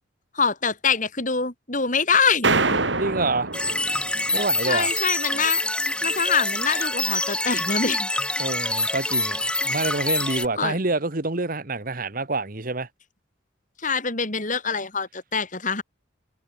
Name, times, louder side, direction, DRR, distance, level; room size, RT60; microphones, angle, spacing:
voice 1, 0.3-2.8 4.7-5.6 6.0-8.1 10.6-10.7 13.8-15.8, left 5 dB, 45° left, 4.9 m, -24 dB
sound 1, 2.4-4.4, right 3 dB, 70° right, 3.4 m, -25 dB
voice 2, 3.0-3.5 4.3-4.9 8.4-12.9, right 3 dB, 50° right, 1.6 m, -27 dB
sound 2, 3.5-10.5, left 2 dB, 5° left, 0.9 m, -26 dB
head